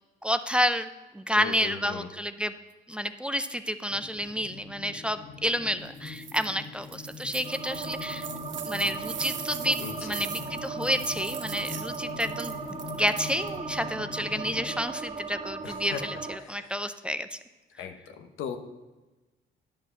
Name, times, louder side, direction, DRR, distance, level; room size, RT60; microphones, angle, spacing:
voice 1, 0.2-2.6 2.9-8.3 8.7-17.4, equal, 5° right, 10 dB, 0.5 m, -30 dB
voice 2, 1.4-2.1 9.8-10.2 15.6-16.0 16.4-16.7 17.8-18.6, left 8 dB, 90° left, 7 dB, 0.9 m, -38 dB
sound 1, 3.9-14.8, left 4 dB, 30° left, 0.8 m, -43 dB
sound 2, 5.9-6.5 6.8-13.6, right 9 dB, 70° right, 0.9 m, -41 dB
sound 3, 7.4-16.4, right 5 dB, 30° right, 1.4 m, -37 dB
10.0 x 5.4 x 6.3 m, 1.1 s
cardioid pair, 90°, 20 cm